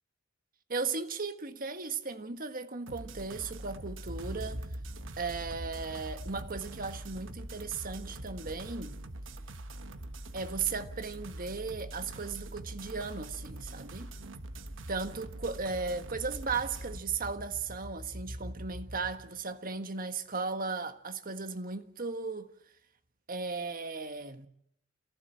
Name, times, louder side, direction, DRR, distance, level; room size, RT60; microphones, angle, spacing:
voice 1, 0.7-4.7 5.2-9.0 10.3-14.1 14.9-22.5 23.3-24.5, right 4 dB, 45° right, 1.5 m, -36 dB
sound 1, 2.9-17.0, right 1 dB, 65° right, 1.2 m, -44 dB
sound 2, 4.0-19.7, equal, 30° right, 2.1 m, -47 dB
28.0 x 15.0 x 7.6 m
head